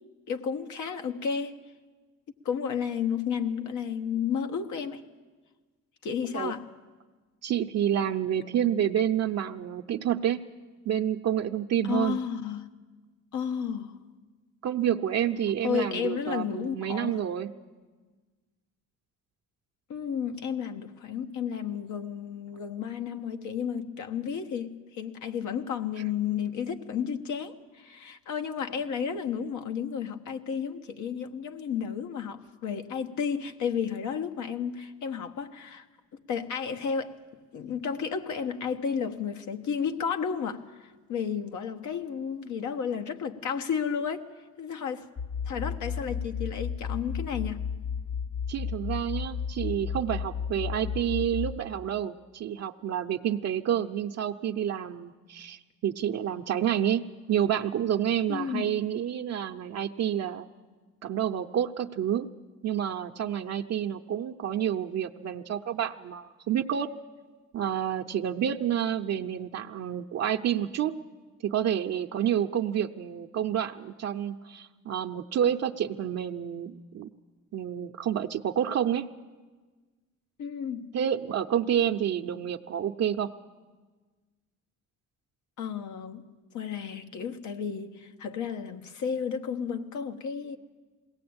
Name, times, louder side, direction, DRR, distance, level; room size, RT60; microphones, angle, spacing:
voice 1, 0.3-1.6 2.4-5.0 6.0-6.7 11.9-12.7 13.3-14.0 15.6-17.2 19.9-35.8 36.3-37.2 37.5-44.3 44.6-45.1 45.4-47.6 58.3-58.7 68.4-68.5 80.4-80.9 85.6-86.3 86.5-90.6, left 7 dB, 75° left, 1.3 m, -32 dB
voice 2, 7.4-10.4 10.8-12.2 14.6-17.5 48.5-60.5 61.0-62.3 62.6-66.9 67.5-70.9 71.4-77.1 77.5-79.1 80.9-83.3, right 10 dB, 60° right, 0.7 m, -29 dB
sound 1, 45.2-51.6, left 7 dB, 40° left, 1.2 m, -33 dB
21.0 x 17.5 x 8.7 m
cardioid pair, 90°, 30 cm